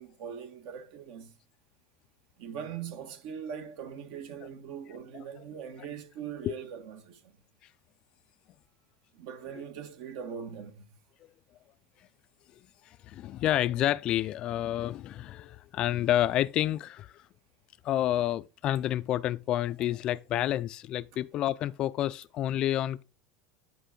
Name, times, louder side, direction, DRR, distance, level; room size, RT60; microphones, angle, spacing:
voice 1, 0.0-1.4 2.4-7.3 9.1-10.9, right 7 dB, 65° right, 1.4 m, -41 dB
voice 2, 13.0-17.2 17.8-23.0, left 13 dB, 40° left, 0.3 m, -29 dB
10.5 x 4.6 x 3.7 m
supercardioid pair, 145°, 2 cm